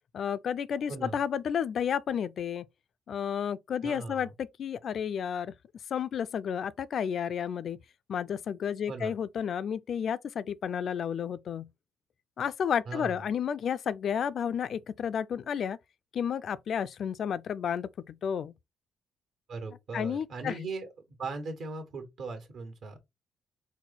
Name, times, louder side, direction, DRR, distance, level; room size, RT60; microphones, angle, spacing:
voice 1, 0.1-2.7 3.1-5.5 5.9-7.8 8.1-11.7 12.4-15.8 16.1-18.5 19.9-20.6, left 8 dB, 60° left, 0.3 m, -31 dB
voice 2, 3.8-4.3 8.9-9.2 12.9-13.3 19.5-23.0, right 3 dB, 70° right, 1.4 m, -39 dB
4.1 x 2.2 x 4.0 m
cardioid pair, 90°, 0 cm